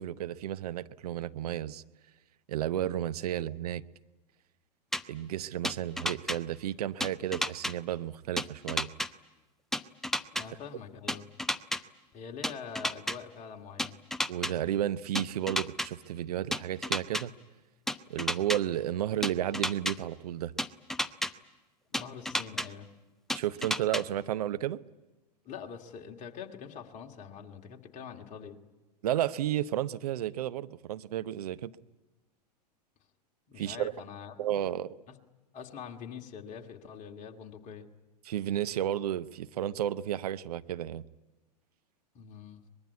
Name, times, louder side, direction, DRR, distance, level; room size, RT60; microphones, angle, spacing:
voice 1, 0.0-1.8 2.5-3.8 5.1-8.9 14.3-17.3 18.1-20.5 23.3-24.8 29.0-31.7 33.6-33.9 34.4-35.0 38.2-41.0, right 11 dB, 65° right, 0.8 m, -32 dB
sound 1, 4.9-5.0 5.6-6.4 7.0-7.7 8.4-9.1 9.7-10.4 11.1-11.8 12.4-13.2 13.8-14.5 15.2-15.9 16.5-17.2 17.9-18.6 19.2-19.9 20.6-21.3 21.9-22.7 23.3-24.0, left 1 dB, ahead, 0.7 m, -31 dB
voice 2, 10.3-11.3 12.1-14.0 21.9-22.9 25.4-28.6 33.5-34.4 35.1-35.2 35.5-37.9 42.1-42.6, left 6 dB, 35° left, 2.3 m, -44 dB
24.0 x 21.0 x 9.5 m
figure-of-eight pair, 95°, 21 cm